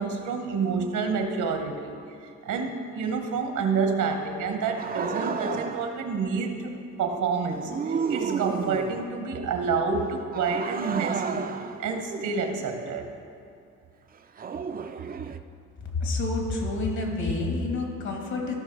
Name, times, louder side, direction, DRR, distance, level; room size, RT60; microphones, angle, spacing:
voice 1, 0.0-1.9 2.2-6.7 7.0-11.5 11.8-13.1, right 5 dB, 75° right, 5 dB, 1.2 m, -28 dB
sound 1, 4.6-6.0 7.5-9.2 10.3-13.0 14.4-15.4, right 6 dB, 30° right, 0.4 m, -32 dB
voice 2, 15.9-18.5, left 2 dB, 65° left, 0 dB, 2.4 m, -28 dB
15.0 x 5.6 x 4.6 m, 2.5 s
cardioid pair, 90°, 30 cm